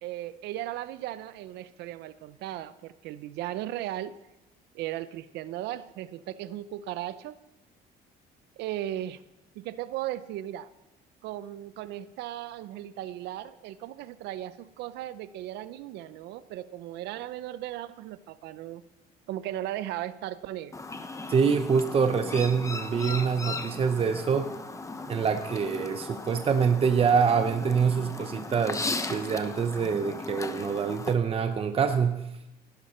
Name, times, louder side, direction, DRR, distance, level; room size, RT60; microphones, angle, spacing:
voice 1, 0.0-4.2 4.7-7.4 8.6-9.2 9.5-10.7 11.2-18.8 19.3-20.8, right 13 dB, 85° right, 15 dB, 0.7 m, -36 dB
Chirp tweet, 20.7-31.1, left 3 dB, 20° left, 1.0 m, -37 dB
voice 2, 21.3-24.5 25.1-32.2, right 6 dB, 35° right, 8 dB, 0.8 m, -25 dB
16.5 x 12.0 x 4.4 m, 0.94 s
cardioid pair, 110°, 17 cm